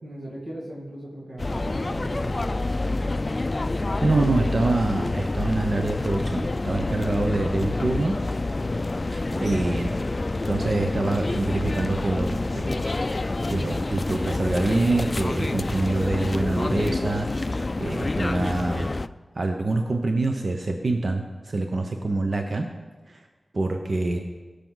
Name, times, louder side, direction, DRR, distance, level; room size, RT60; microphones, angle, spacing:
voice 1, 0.0-3.2 9.3-10.3, right 1 dB, 85° right, -6 dB, 2.0 m, -38 dB
sound 1, 1.4-19.1, left 2 dB, 45° left, 0.3 m, -27 dB
voice 2, 4.0-8.1 9.1-9.9 10.5-12.8 13.5-19.0 19.3-22.7 23.1-23.2 23.5-24.2, right 2 dB, 65° right, 4 dB, 0.9 m, -26 dB
16.5 x 6.8 x 4.0 m, 1.3 s
cardioid pair, 45°, 0 cm